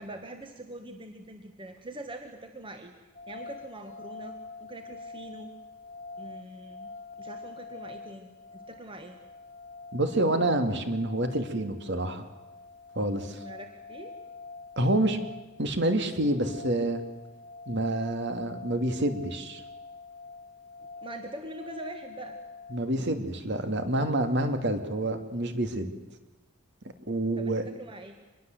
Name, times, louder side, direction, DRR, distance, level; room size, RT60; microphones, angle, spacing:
voice 1, 0.0-2.9 3.3-5.5 6.2-6.9 7.2-9.1 13.3-14.2 21.0-22.4 27.4-28.2, right 1 dB, 25° right, 6 dB, 1.7 m, -43 dB
sound 1, 3.1-22.8, left 3 dB, 35° left, 1.0 m, -45 dB
voice 2, 9.9-12.2 13.0-13.4 14.8-15.2 15.6-17.0 17.7-19.6 22.7-25.9 27.1-27.6, right 1 dB, 55° right, 7 dB, 2.7 m, -28 dB
26.0 x 21.5 x 8.1 m, 1.1 s
head